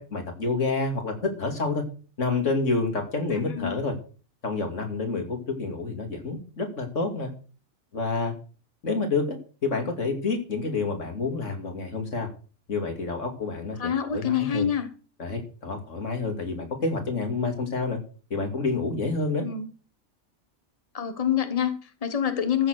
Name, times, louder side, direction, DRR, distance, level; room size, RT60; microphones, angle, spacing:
voice 1, 0.1-1.8 2.2-3.9 4.4-7.3 7.9-8.3 8.8-9.4 9.6-12.3 12.7-14.7 15.2-18.0 18.3-19.4, left 3 dB, 85° left, 4 dB, 2.8 m, -28 dB
voice 2, 3.3-3.7 13.8-14.9 19.4-19.7 20.9-22.7, left 8 dB, 30° left, 9 dB, 1.3 m, -26 dB
14.0 x 6.8 x 6.4 m, 0.38 s
omnidirectional pair, 1.3 m